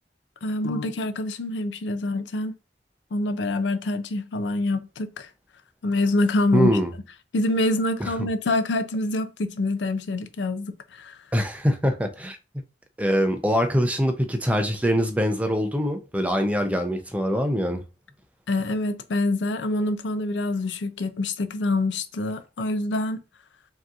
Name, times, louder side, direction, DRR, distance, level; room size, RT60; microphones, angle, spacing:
voice 1, 0.4-2.5 3.1-5.3 5.8-6.7 7.3-11.2 18.5-23.2, left 2 dB, 90° left, 0.5 m, -26 dB
voice 2, 6.5-6.9 8.0-8.1 11.3-12.4 13.0-17.8, equal, 10° right, 0.6 m, -23 dB
5.0 x 2.9 x 2.4 m
head